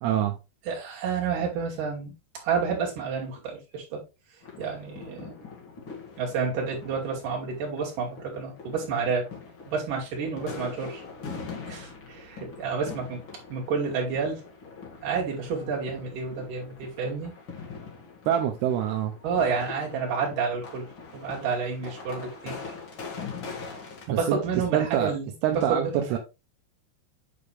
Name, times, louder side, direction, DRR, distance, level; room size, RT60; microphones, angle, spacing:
voice 1, 0.0-0.4 18.3-19.1 24.1-24.4 24.7-25.1 25.4-26.2, right 10 dB, 75° right, 2.5 m, -25 dB
voice 2, 0.7-2.1 2.4-4.0 4.6-5.4 6.2-9.3 9.7-11.0 11.7-13.2 13.5-14.4 15.0-17.3 19.2-22.6 24.1-26.2, right 5 dB, 50° right, 3.7 m, -30 dB
sound 1, 4.4-24.1, left 5 dB, 50° left, 1.5 m, -42 dB
8.7 x 4.8 x 3.3 m
omnidirectional pair, 5.2 m